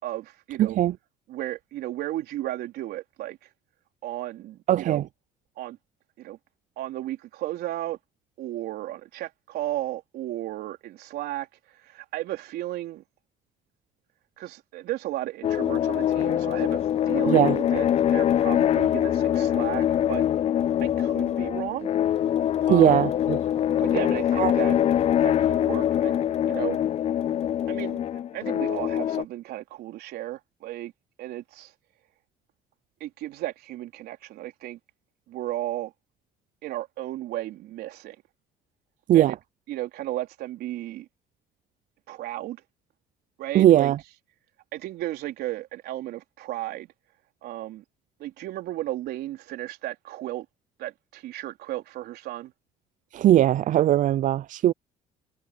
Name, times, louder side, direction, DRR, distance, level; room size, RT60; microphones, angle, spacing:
voice 1, 0.0-0.8 1.3-3.5 4.0-5.1 5.6-5.8 6.2-6.4 6.8-8.0 8.4-13.0 14.4-16.8 17.1-20.2 20.8-21.9 22.7-23.1 23.8-24.8 25.2-26.2 26.5-26.8 27.7-30.9 31.2-31.7 33.0-34.8 35.3-35.9 36.6-38.2 39.1-39.4 39.7-41.1 42.1-42.6 43.4-43.9 44.7-46.9 47.4-47.8 48.2-50.5 50.8-52.5, right 15 dB, 70° right, 3.9 m, -34 dB
voice 2, 0.6-0.9 4.7-5.0 17.3-17.5 22.7-23.4 24.4-24.5 39.1-39.3 43.5-44.0 53.1-54.7, right 12 dB, 50° right, 0.4 m, -19 dB
sound 1, 15.4-29.2, left 10 dB, 40° left, 0.3 m, -24 dB
supercardioid pair, 80°, 17 cm